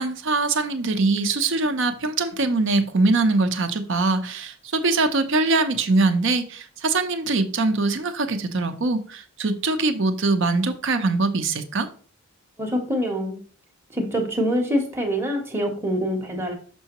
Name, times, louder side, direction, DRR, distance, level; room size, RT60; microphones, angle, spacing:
voice 1, 0.0-11.9, right 3 dB, 60° right, 0.7 m, -22 dB
voice 2, 12.6-13.4 13.9-16.5, equal, 10° right, 0.8 m, -25 dB
6.1 x 5.6 x 2.9 m
head